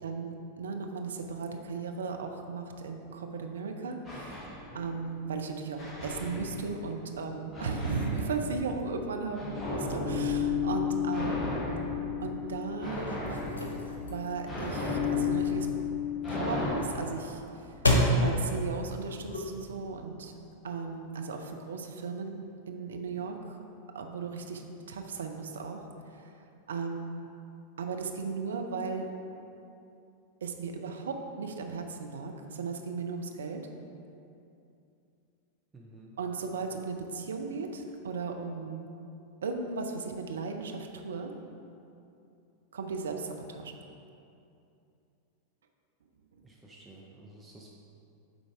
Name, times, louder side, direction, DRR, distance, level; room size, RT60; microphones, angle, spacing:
voice 1, 0.0-11.6 12.2-13.1 14.0-15.7 16.3-20.3 20.6-23.6 23.9-26.3 26.7-27.3 27.8-29.1 30.4-33.6 36.2-38.9 39.4-41.3 42.7-43.8, right 4 dB, 65° right, 4 dB, 0.5 m, -36 dB
sound 1, 4.0-5.2 5.8-7.0 7.5-16.8, left 5 dB, 20° left, 1.1 m, -33 dB
sound 2, 12.8-19.9, left 1 dB, 75° left, 0.9 m, -32 dB
voice 2, 35.7-36.1 46.4-47.7, right 2 dB, 10° right, -3 dB, 0.6 m, -52 dB
7.6 x 4.0 x 4.8 m, 2.7 s
figure-of-eight pair, 90°, 0 cm